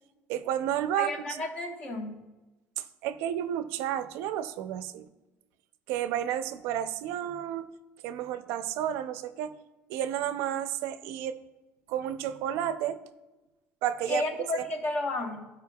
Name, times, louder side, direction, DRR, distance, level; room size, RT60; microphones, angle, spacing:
voice 1, 0.3-1.4 2.8-5.1 5.9-7.7 8.0-9.6 9.9-11.4 11.9-13.0 13.8-14.2 14.5-14.6, right 11 dB, 75° right, 11 dB, 0.5 m, -31 dB
voice 2, 1.0-2.2 14.1-15.5, left 2 dB, 35° left, 4 dB, 1.0 m, -32 dB
14.5 x 4.9 x 2.3 m, 1.1 s
cardioid pair, 170°, 4 cm